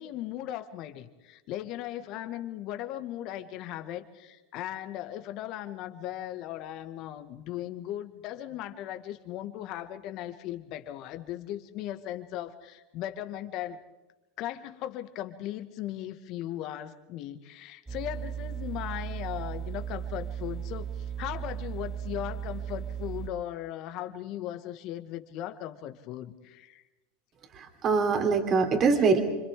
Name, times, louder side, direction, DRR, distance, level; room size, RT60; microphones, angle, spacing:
voice 1, 0.0-13.8 14.4-26.8, left 12 dB, 50° left, 9 dB, 1.9 m, -38 dB
sound 1, 17.9-23.3, right 8 dB, 10° right, 1.8 m, -36 dB
voice 2, 27.5-29.2, right 4 dB, 40° right, 4 dB, 3.4 m, -23 dB
28.5 x 26.0 x 3.8 m, 1.1 s
hypercardioid pair, 90°, 0 cm